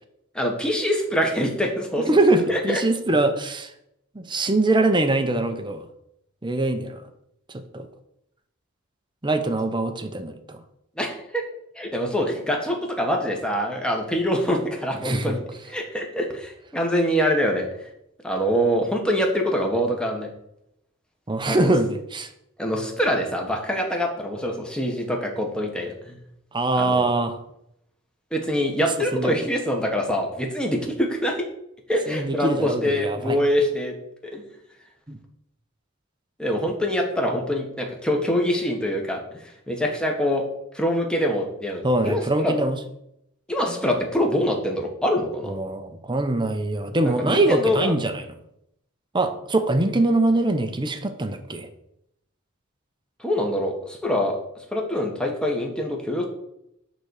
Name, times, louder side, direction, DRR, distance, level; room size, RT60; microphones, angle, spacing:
voice 1, 0.3-2.1 2.5-2.8 11.0-11.4 11.7-17.7 18.2-20.3 21.5-21.7 22.6-26.2 26.7-27.0 28.3-31.4 31.9-33.9 34.2-34.4 36.4-40.4 40.7-42.5 43.5-45.5 47.0-47.9 53.2-54.4 54.7-56.2, equal, 5° left, 1 dB, 1.5 m, -24 dB
voice 2, 2.0-3.7 4.1-5.9 6.4-7.0 7.5-7.9 9.2-10.6 15.0-15.3 21.3-22.3 26.5-27.4 29.1-29.4 32.1-33.4 35.1-35.2 41.8-42.8 43.8-43.9 45.4-48.2 49.1-51.7, right 2 dB, 20° right, 7 dB, 0.9 m, -23 dB
9.9 x 4.1 x 6.5 m, 0.79 s
head